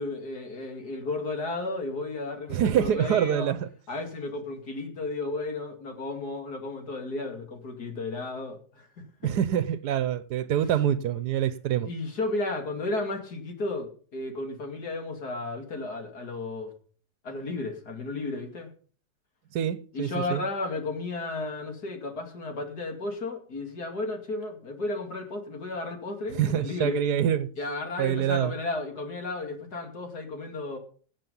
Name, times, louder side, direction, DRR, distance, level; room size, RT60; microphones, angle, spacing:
voice 1, 0.0-3.5 3.9-8.9 11.8-16.7 17.2-18.7 19.9-27.0 27.6-30.8, left 2 dB, 75° left, 3.1 m, -33 dB
voice 2, 2.5-3.7 9.2-11.9 19.5-20.4 26.3-27.5 28.0-28.5, right 10 dB, 85° right, 1.4 m, -26 dB
18.0 x 7.6 x 5.5 m
omnidirectional pair, 1.7 m